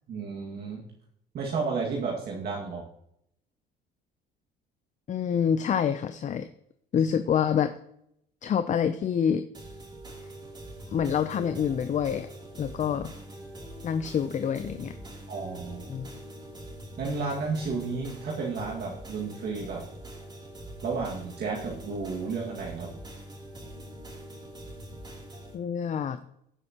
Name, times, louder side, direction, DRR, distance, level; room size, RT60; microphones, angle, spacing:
voice 1, 0.1-0.8 1.3-2.8 15.3-15.9 17.0-19.8 20.8-22.9, right 4 dB, 55° right, -2 dB, 2.0 m, -32 dB
voice 2, 5.1-6.5 6.9-7.7 8.4-9.4 10.9-12.3 12.6-13.1 13.8-15.0 15.9-16.1 25.5-26.2, left 8 dB, 40° left, 10 dB, 0.5 m, -27 dB
sound 1, 9.5-25.5, right 1 dB, 20° right, 3.1 m, -44 dB
15.5 x 6.5 x 2.9 m, 0.73 s
cardioid pair, 95°, 19 cm